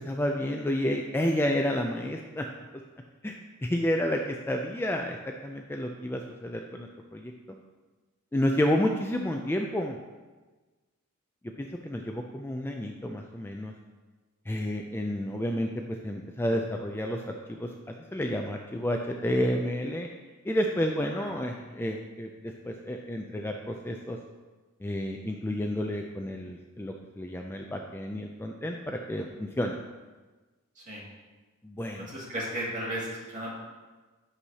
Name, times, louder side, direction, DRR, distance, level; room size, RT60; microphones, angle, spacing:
voice 1, 0.0-2.5 3.2-3.3 3.6-5.2 5.4-7.3 8.3-10.0 11.6-13.7 14.5-15.7 16.0-17.7 18.1-20.1 20.5-24.2 24.8-29.8 31.6-32.1, left 1 dB, 10° left, 2 dB, 0.3 m, -30 dB
voice 2, 32.0-33.6, right 1 dB, 35° right, -6 dB, 2.2 m, -35 dB
9.9 x 6.2 x 2.8 m, 1.3 s
head